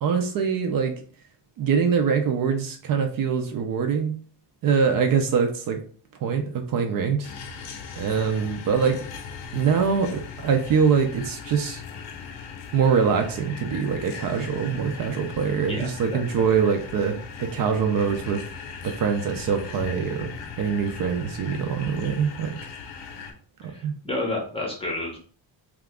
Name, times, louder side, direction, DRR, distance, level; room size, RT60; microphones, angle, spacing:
voice 1, 0.0-0.9 1.6-4.1 4.6-5.8 6.2-7.3 8.0-9.0 9.5-11.8 12.7-18.4 18.8-20.3 20.6-22.5 23.6-23.9, right 6 dB, 55° right, 5 dB, 0.5 m, -24 dB
sound 1, 7.2-23.3, left 6 dB, 80° left, 0.7 m, -39 dB
voice 2, 15.6-16.2 23.6-25.2, left 2 dB, 15° left, -1 dB, 0.6 m, -31 dB
2.8 x 2.4 x 3.5 m, 0.43 s
cardioid pair, 165°, 42 cm